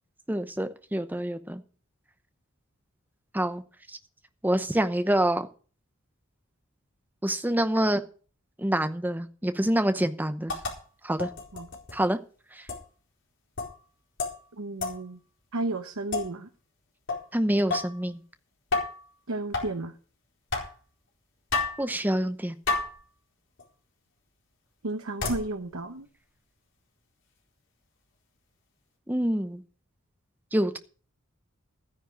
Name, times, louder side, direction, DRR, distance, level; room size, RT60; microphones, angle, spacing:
voice 1, 0.3-1.6 3.3-3.6 3.9-4.0 4.4-5.5 7.2-8.0 8.6-10.6 11.0-11.3 11.9-12.2 12.5-12.7 17.3-18.2 21.8-22.6 29.1-29.6 30.5-30.8, right 1 dB, 10° right, 9 dB, 0.8 m, -26 dB
sound 1, 10.5-10.8 11.2-11.9 12.7-12.8 13.6-13.8 14.2-14.4 14.8-15.0 16.1-16.3 17.1-17.3 17.7-18.0 18.7-19.0 19.5-19.7 20.5-20.7 21.5-21.8 22.7-23.0 23.6-23.7 25.2-25.5, left 3 dB, 60° left, 4.3 m, -30 dB
voice 2, 14.5-15.2 15.5-16.5 19.3-19.9 24.8-26.1, right 2 dB, 90° right, 7 dB, 1.0 m, -33 dB
13.0 x 9.9 x 5.2 m, 0.40 s
head